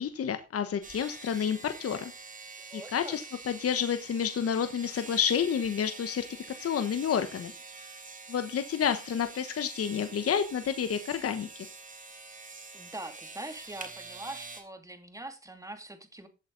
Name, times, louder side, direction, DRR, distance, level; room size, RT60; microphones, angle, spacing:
voice 1, 0.0-2.1 2.7-7.5 8.3-11.7, left 8 dB, 50° left, 1.2 m, -30 dB
sound 1, 0.8-14.6, right 3 dB, 25° right, 3.9 m, -46 dB
voice 2, 2.7-3.2 12.7-16.3, right 2 dB, 10° right, 2.5 m, -43 dB
15.0 x 8.3 x 4.0 m
cardioid pair, 90°, 30 cm